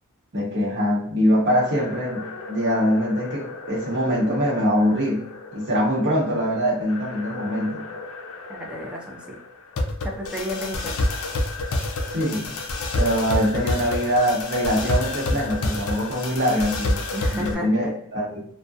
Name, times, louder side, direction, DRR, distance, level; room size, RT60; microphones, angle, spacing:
voice 1, 0.3-5.2 5.5-7.8 12.1-12.6 13.0-17.0 17.4-18.5, equal, 50° right, -4 dB, 0.9 m, -23 dB
sound 1, 1.5-17.5, left 2 dB, 70° left, 0.4 m, -30 dB
voice 2, 8.5-9.4 10.0-11.0 17.1-17.7, equal, 5° right, -1 dB, 0.4 m, -32 dB
2.3 x 2.1 x 2.5 m, 0.69 s
head